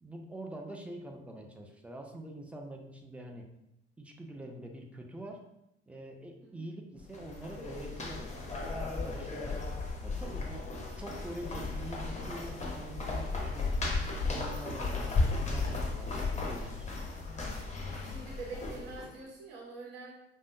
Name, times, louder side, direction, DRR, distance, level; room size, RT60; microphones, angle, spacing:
voice 1, 0.0-3.5 4.0-5.4 5.9-9.6 10.0-10.7 11.0-13.8 14.2-16.9, right 1 dB, 5° right, 2 dB, 0.6 m, -45 dB
sound 1, 7.0-19.1, left 3 dB, 20° left, 0.9 m, -35 dB
voice 2, 18.0-20.1, right 4 dB, 65° right, -3 dB, 1.0 m, -45 dB
5.1 x 2.1 x 2.6 m, 0.83 s
figure-of-eight pair, 55°, 31 cm